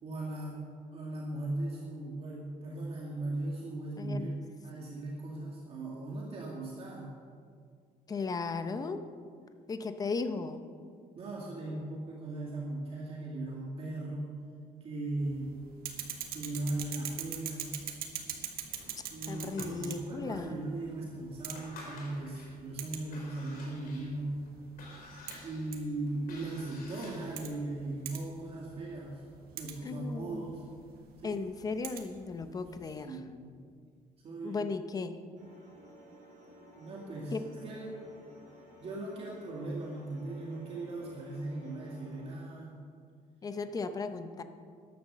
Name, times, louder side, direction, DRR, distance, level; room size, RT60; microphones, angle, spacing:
voice 1, 0.0-7.1 11.2-14.4 14.8-15.5 16.3-17.8 19.1-24.4 25.4-29.2 29.5-30.6 31.2-31.4 33.0-33.6 34.2-34.6 36.8-38.0 38.8-42.8, right 2 dB, 40° right, -3 dB, 2.0 m, -38 dB
voice 2, 4.0-4.3 8.1-9.1 9.7-10.6 19.3-20.6 29.8-30.6 31.2-33.2 34.4-35.2 37.3-37.4 43.4-44.4, left 4 dB, 25° left, 10 dB, 0.7 m, -36 dB
sound 1, 15.2-32.9, right 9 dB, 85° right, 1.6 m, -45 dB
sound 2, 18.7-20.3 20.8-20.9 21.3-22.6 23.0-27.6, left 2 dB, 70° left, 3.9 m, -50 dB
sound 3, 35.4-42.4, equal, 55° right, 4.6 m, -55 dB
13.5 x 10.5 x 6.7 m, 2.1 s
cardioid pair, 170°, 15 cm